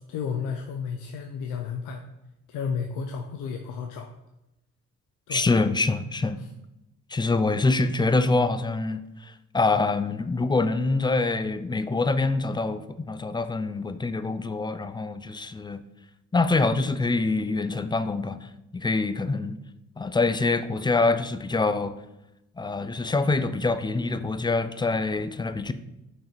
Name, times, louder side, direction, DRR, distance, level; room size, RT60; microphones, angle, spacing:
voice 1, 0.1-2.0 2.5-4.1 5.3-5.5 6.4-6.5, left 6 dB, 90° left, 4 dB, 0.7 m, -32 dB
voice 2, 5.3-6.4 7.1-15.8 16.3-19.6 20.0-21.9 22.6-25.7, left 3 dB, 15° left, 11 dB, 0.4 m, -25 dB
6.2 x 4.7 x 4.4 m, 0.91 s
cardioid pair, 90°, 30 cm